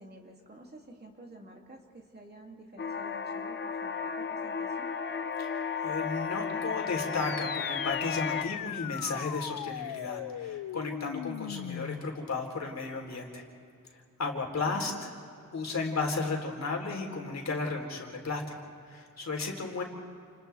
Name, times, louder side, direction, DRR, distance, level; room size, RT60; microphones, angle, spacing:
voice 1, 0.0-4.9 14.6-14.9, right 1 dB, 30° right, 0 dB, 2.7 m, -50 dB
sound 1, 2.8-8.4, left 6 dB, 35° left, 0.8 m, -34 dB
voice 2, 5.4-13.4 14.2-14.9 15.5-19.8, left 3 dB, 55° left, 1 dB, 3.6 m, -34 dB
sound 2, 7.1-12.1, left 11 dB, 90° left, 0.5 m, -38 dB
29.5 x 29.5 x 3.5 m, 2.4 s
wide cardioid pair, 155°, 33 cm